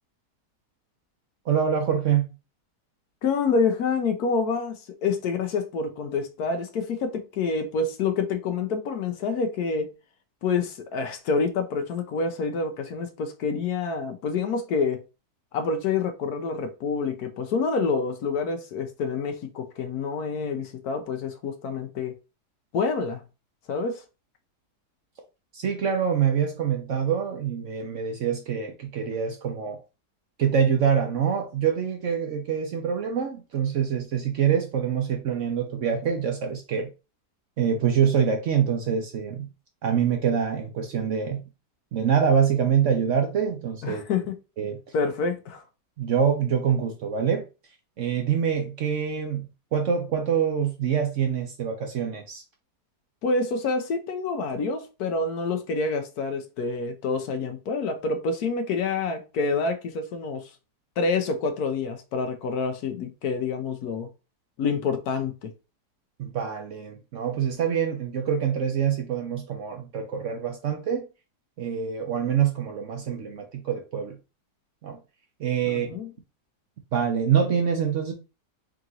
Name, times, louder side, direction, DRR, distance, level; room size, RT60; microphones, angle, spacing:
voice 1, 1.4-2.3 25.5-29.8 30.4-36.9 37.6-39.5 39.8-41.4 41.9-44.0 44.6-44.8 46.0-47.4 48.0-52.4 66.2-71.1 71.6-74.2 74.8-75.0 75.4-75.9 76.9-78.1, right 7 dB, 60° right, 0.9 m, -25 dB
voice 2, 3.2-9.9 10.4-15.0 15.5-22.1 22.7-23.2 23.7-24.0 43.8-44.2 44.9-45.6 53.2-60.4 61.0-64.1 64.6-65.5 75.7-76.1, left 4 dB, 70° left, 1.2 m, -27 dB
3.8 x 2.9 x 3.7 m
omnidirectional pair, 1.8 m